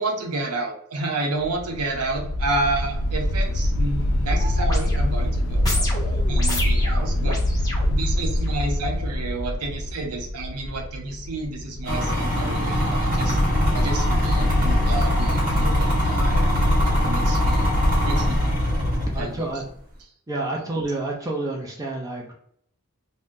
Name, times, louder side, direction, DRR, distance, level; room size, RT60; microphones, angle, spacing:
voice 1, 0.0-5.8 6.3-7.4 7.8-13.4 13.7-16.5 16.8-17.7 18.0-18.6 19.2-19.5, right 2 dB, 85° right, 1 dB, 0.7 m, -30 dB
sound 1, 1.4-19.2, left 1 dB, 70° left, 0.4 m, -24 dB
sound 2, 4.4-8.5 9.1-9.3, left 1 dB, 15° left, 0.8 m, -31 dB
sound 3, 11.8-19.4, equal, 40° right, 1.4 m, -25 dB
voice 2, 19.1-19.6 20.3-22.3, right 2 dB, 15° right, -2 dB, 0.4 m, -29 dB
3.6 x 2.1 x 2.6 m, 0.67 s
head